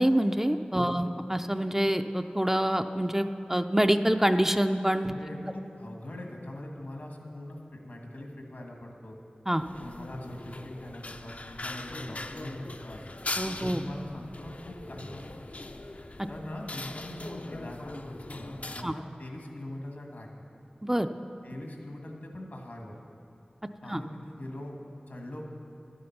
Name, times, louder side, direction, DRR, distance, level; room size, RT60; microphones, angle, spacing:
voice 1, 0.0-5.1 9.5-9.6 13.4-13.8 16.2-16.3 18.8-18.9 20.8-21.1 23.9-24.0, equal, 15° right, 7 dB, 0.4 m, -26 dB
voice 2, 5.0-9.2 9.8-13.0 13.6-15.6 16.3-20.3 21.4-23.0 23.8-24.8 25.1-25.4, left 1 dB, 80° left, 1 dB, 1.5 m, -42 dB
sound 1, 9.6-18.8, left 2 dB, 55° left, 0.5 m, -40 dB
11.0 x 8.6 x 5.8 m, 2.7 s
wide cardioid pair, 45°, 3 cm